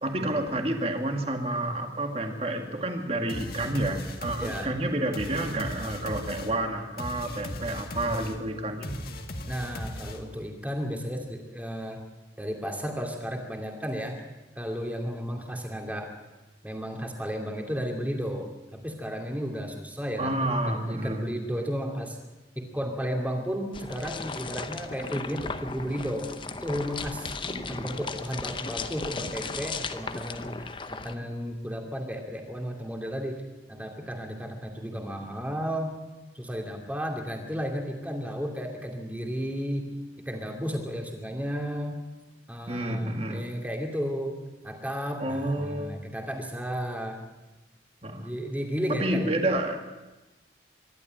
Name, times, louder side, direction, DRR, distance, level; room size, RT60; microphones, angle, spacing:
voice 1, 0.0-8.9 20.2-21.2 27.5-27.9 42.7-43.5 45.2-46.0 48.0-48.3 49.0-49.8, right 1 dB, 30° right, 4 dB, 2.0 m, -29 dB
sound 1, 3.3-10.5, left 1 dB, 55° left, 1.8 m, -38 dB
voice 2, 4.4-4.7 9.5-12.0 12.4-14.2 14.6-16.1 16.6-22.2 22.6-27.3 27.7-33.4 33.7-35.9 36.3-40.0 40.3-42.1 42.5-47.2 48.1-49.3, equal, 10° right, 2 dB, 2.5 m, -33 dB
sound 2, 23.7-31.2, left 4 dB, 25° left, 0.8 m, -36 dB
24.0 x 12.0 x 8.9 m, 1.1 s
head